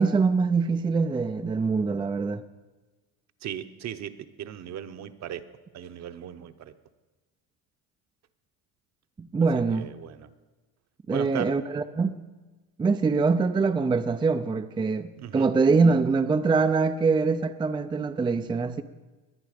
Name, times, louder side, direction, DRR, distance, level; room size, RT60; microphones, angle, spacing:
voice 1, 0.0-2.4 9.2-9.9 11.1-12.2 12.8-18.8, right 4 dB, 15° right, 0.4 m, -24 dB
voice 2, 3.4-5.4 5.7-6.7 9.7-10.3 11.1-11.5 15.2-15.5, right 10 dB, 45° right, 0.9 m, -37 dB
21.5 x 9.0 x 5.1 m
supercardioid pair, 110°, 38 cm